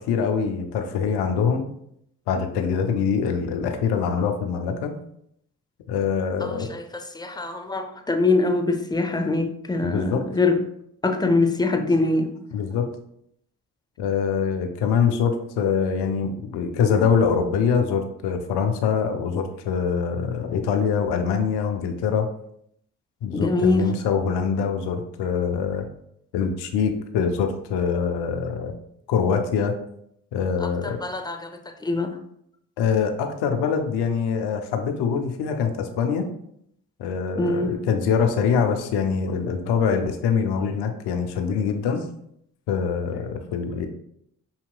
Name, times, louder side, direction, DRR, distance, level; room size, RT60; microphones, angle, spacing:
voice 1, 0.0-1.7 2.3-4.9 5.9-6.7 9.8-10.2 12.5-12.9 14.0-22.3 23.2-25.9 26.3-28.8 29.1-29.7 30.3-31.0 32.8-36.3 37.0-42.1 42.7-43.9, left 6 dB, 80° left, 6 dB, 0.6 m, -24 dB
voice 2, 6.4-6.8 7.1-10.6 11.0-12.3 23.3-23.9 30.6-32.2 37.4-37.7, left 3 dB, 10° left, 6 dB, 0.6 m, -23 dB
5.6 x 2.8 x 2.2 m, 0.72 s
hypercardioid pair, 40°, 39 cm